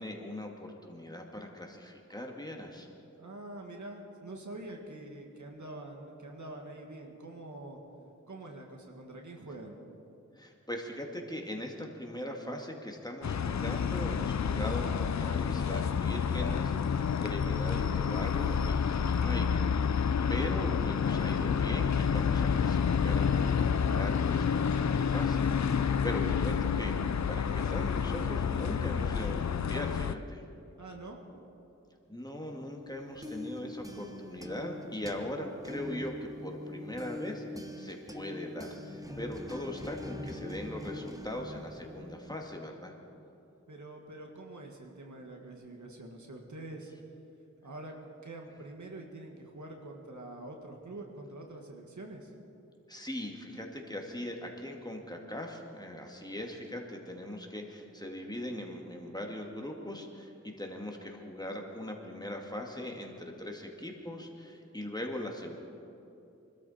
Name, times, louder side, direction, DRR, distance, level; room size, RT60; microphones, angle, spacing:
voice 1, 0.0-2.9 10.3-19.9 20.3-26.9 27.3-30.4 32.1-37.4 37.7-42.9 52.9-65.5, left 1 dB, 15° left, 1 dB, 2.2 m, -40 dB
voice 2, 3.2-7.8 8.3-9.8 30.8-31.2 43.7-46.9 47.6-48.0 48.2-52.3, right 2 dB, 85° right, 1 dB, 1.9 m, -45 dB
sound 1, 13.2-30.1, left 6 dB, 70° left, 0.5 m, -29 dB
sound 2, 32.9-42.5, left 1 dB, 10° right, 1.3 m, -43 dB
24.5 x 13.0 x 4.3 m, 2.8 s
wide cardioid pair, 50°, 29 cm